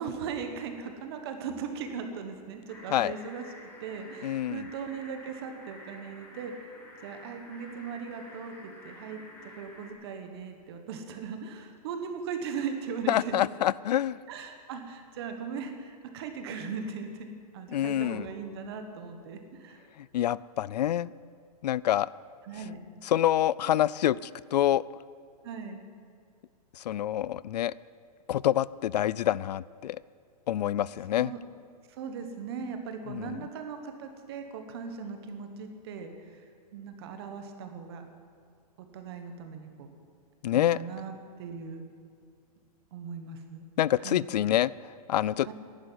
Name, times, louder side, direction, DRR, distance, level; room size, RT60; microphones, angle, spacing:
voice 1, 0.0-3.4 3.8-6.5 7.0-13.4 14.3-19.8 22.4-22.8 25.4-25.8 31.1-31.4 31.9-36.4 36.7-38.0 38.8-39.9 40.5-41.8 42.9-43.6 44.0-44.2 45.5-45.6, right 6 dB, 40° right, 6 dB, 1.4 m, -38 dB
sound 1, 2.7-9.9, left 1 dB, 10° left, 1.7 m, -50 dB
voice 2, 4.2-4.7 13.1-14.2 17.7-18.3 20.0-21.1 21.6-22.1 23.0-24.8 26.8-27.7 28.3-30.0 30.5-31.3 33.1-33.4 40.4-40.8 43.8-45.5, left 12 dB, 85° left, 21 dB, 0.4 m, -27 dB
11.5 x 10.5 x 9.2 m, 2.4 s
hypercardioid pair, 170°, 20 cm